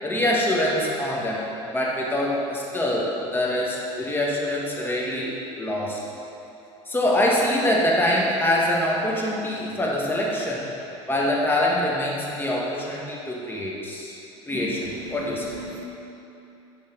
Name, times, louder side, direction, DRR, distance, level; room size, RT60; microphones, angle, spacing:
voice 1, 0.0-5.3 5.6-6.0 6.9-10.7 11.1-14.1 14.5-15.5, left 1 dB, 15° left, -4 dB, 1.8 m, -24 dB
voice 2, 14.9-15.8, right 2 dB, 75° right, 1 dB, 1.0 m, -38 dB
9.8 x 4.0 x 5.3 m, 2.8 s
supercardioid pair, 85°, 16 cm